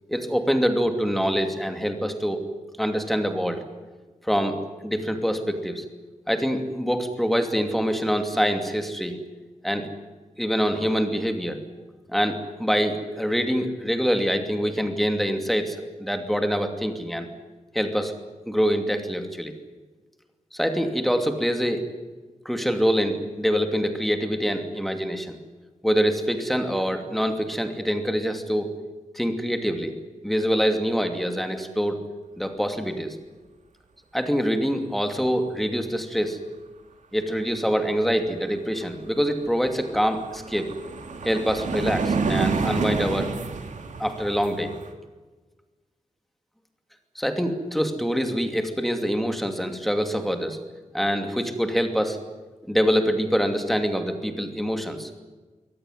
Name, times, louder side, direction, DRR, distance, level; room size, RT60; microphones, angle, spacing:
voice 1, 0.1-2.4 2.8-3.7 4.2-5.8 6.3-9.2 9.6-9.9 10.4-11.6 12.1-17.3 17.7-18.1 18.5-19.5 20.5-21.9 22.4-25.4 25.8-28.7 29.1-29.9 30.2-32.0 32.4-33.2 34.1-36.4 37.1-40.7 41.2-43.3 44.0-44.7 47.1-50.6 50.9-52.2 52.7-55.1, equal, ahead, 6 dB, 2.6 m, -25 dB
sound 1, 38.8-38.9 39.2-44.9, right 4 dB, 75° right, 2.7 m, -29 dB
24.0 x 18.0 x 9.9 m, 1.3 s
wide cardioid pair, 160°, 13 cm